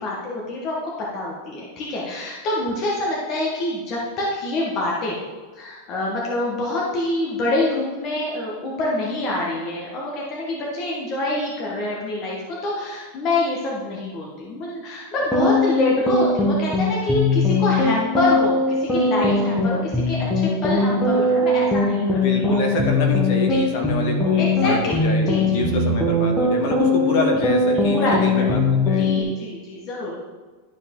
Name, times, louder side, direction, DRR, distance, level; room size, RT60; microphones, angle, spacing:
voice 1, 0.0-5.2 5.5-22.8 23.5-23.6 24.3-25.0 25.3-25.8 27.7-28.5 28.8-30.2, left 2 dB, 25° left, -4 dB, 1.2 m, -26 dB
sound 1, 15.2-29.2, left 2 dB, 5° left, 1.0 m, -20 dB
voice 2, 22.2-29.1, left 2 dB, 40° left, 1 dB, 1.4 m, -26 dB
11.5 x 4.9 x 3.7 m, 1.4 s
supercardioid pair, 180°, 0 cm